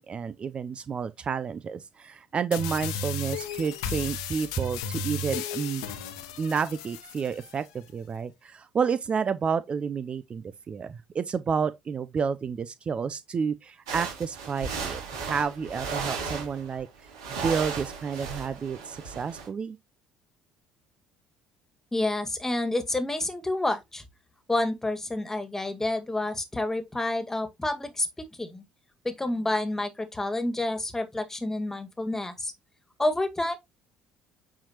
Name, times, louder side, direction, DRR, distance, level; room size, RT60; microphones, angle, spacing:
voice 1, 0.0-5.8 6.4-16.9 17.3-19.8, right 6 dB, 40° right, 0.6 m, -30 dB
sound 1, 2.5-7.5, left 4 dB, 75° left, 1.1 m, -34 dB
sound 2, 13.9-16.8 17.1-19.5, right 5 dB, 75° right, 3.1 m, -35 dB
voice 2, 21.9-24.0 24.5-28.6 29.0-32.5 33.0-33.6, left 2 dB, 15° left, 1.9 m, -29 dB
8.9 x 4.8 x 3.0 m
hypercardioid pair, 55°, 3 cm